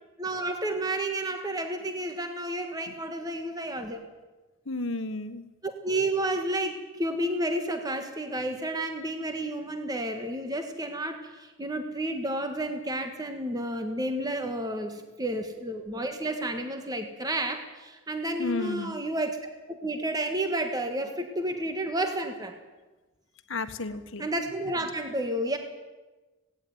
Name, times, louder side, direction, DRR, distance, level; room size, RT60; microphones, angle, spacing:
voice 1, 0.2-4.0 5.6-19.4 19.7-22.5 24.2-25.6, right 1 dB, 20° right, 6 dB, 1.5 m, -31 dB
voice 2, 4.6-5.4 18.4-19.0 23.5-24.3, left 2 dB, 60° left, 9 dB, 1.5 m, -32 dB
17.5 x 17.0 x 9.5 m, 1.2 s
head